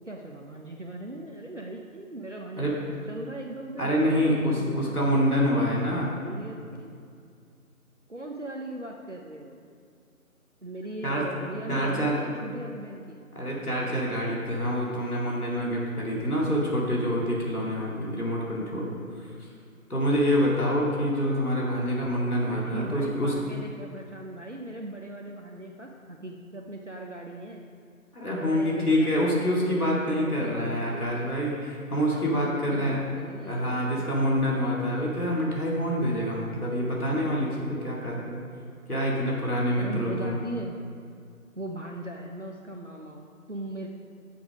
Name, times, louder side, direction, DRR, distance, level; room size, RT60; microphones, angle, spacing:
voice 1, 0.1-6.9 8.1-9.6 10.6-13.2 22.5-27.6 28.4-31.1 31.9-34.1 39.8-40.8 41.6-43.9, right 1 dB, 55° right, 0 dB, 0.7 m, -39 dB
voice 2, 3.8-6.1 11.0-11.3 11.7-12.2 13.3-18.9 19.9-23.3 28.1-33.0 33.5-38.4 38.9-40.4, equal, 80° left, -4 dB, 2.4 m, -26 dB
9.5 x 7.1 x 5.1 m, 2.3 s
figure-of-eight pair, 175°, 44 cm